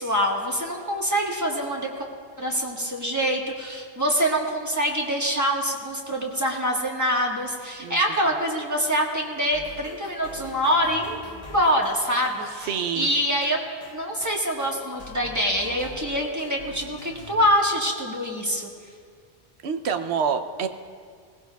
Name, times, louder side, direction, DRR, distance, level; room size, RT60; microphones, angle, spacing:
voice 1, 0.0-2.1 2.4-11.2 11.5-13.6 13.9-18.7, equal, 15° right, -1 dB, 1.4 m, -25 dB
sound 1, 9.5-17.4, left 3 dB, 40° left, 0.9 m, -43 dB
voice 2, 12.6-13.1 19.6-20.7, right 6 dB, 80° right, 8 dB, 1.0 m, -26 dB
20.5 x 15.5 x 2.3 m, 2.1 s
omnidirectional pair, 1.1 m